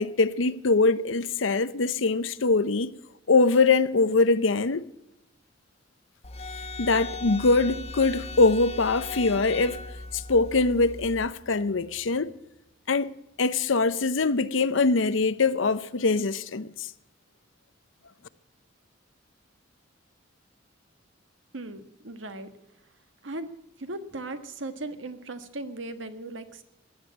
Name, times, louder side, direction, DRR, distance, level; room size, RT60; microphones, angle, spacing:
voice 1, 0.0-3.0 3.3-4.9 6.8-9.8 10.1-12.4 12.9-13.1 13.4-16.9, left 3 dB, 85° left, 0.7 m, -23 dB
sound 1, 6.2-11.3, left 3 dB, 35° left, 1.1 m, -38 dB
voice 2, 21.5-22.5 23.2-23.5 23.8-26.6, right 2 dB, 80° right, 1.5 m, -37 dB
15.5 x 9.9 x 8.5 m
head